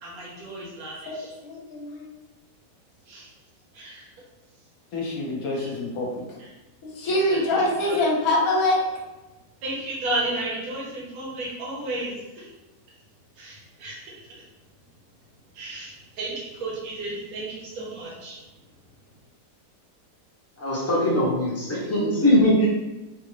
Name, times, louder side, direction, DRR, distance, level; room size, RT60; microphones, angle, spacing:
voice 1, 0.0-1.3 3.1-3.3 3.7-4.1 5.5-5.7 7.0-8.0 9.6-12.5 13.4-14.3 15.5-18.4, right 2 dB, 60° right, -4 dB, 1.5 m, -33 dB
voice 2, 1.4-2.1 4.9-6.2 6.8-8.8, left 1 dB, 60° left, -2 dB, 1.2 m, -25 dB
voice 3, 20.6-22.7, equal, 15° left, -6 dB, 0.5 m, -21 dB
3.9 x 2.5 x 3.2 m, 1.1 s
omnidirectional pair, 1.9 m